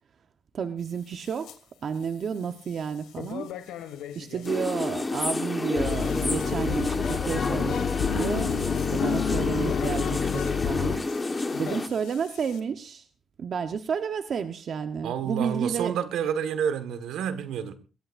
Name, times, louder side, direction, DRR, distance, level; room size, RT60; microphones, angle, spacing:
voice 1, 0.5-1.5 1.8-3.5 4.1-7.8 8.1-8.5 8.9-11.0 11.6-13.1 13.4-15.9, right 6 dB, 55° right, 1.1 m, -31 dB
sound 1, 0.8-1.6 1.9-4.5 5.6-12.6, left 10 dB, 90° left, 1.9 m, -44 dB
sound 2, 4.5-11.9, left 3 dB, 20° left, 1.4 m, -29 dB
sound 3, 5.7-11.0, left 8 dB, 70° left, 1.2 m, -29 dB
voice 2, 15.0-17.7, right 8 dB, 80° right, 1.6 m, -29 dB
22.0 x 18.5 x 2.6 m
cardioid pair, 90°, 0 cm